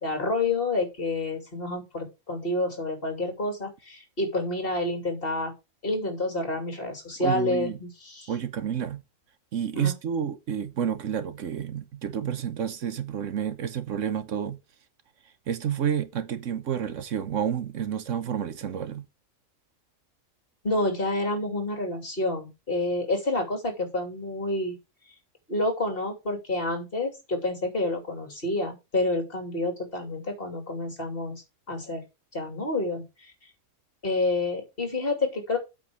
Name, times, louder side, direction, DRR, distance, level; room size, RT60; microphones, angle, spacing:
voice 1, 0.0-5.5 5.8-8.3 9.7-9.9 20.6-24.8 25.5-31.3 31.7-32.0 32.3-33.0 34.0-35.6, left 2 dB, 45° left, 3.0 m, -28 dB
voice 2, 7.2-7.8 8.3-9.0 9.5-14.6 15.5-19.0, right 8 dB, 75° right, 1.2 m, -30 dB
8.4 x 5.2 x 6.3 m
omnidirectional pair, 1.4 m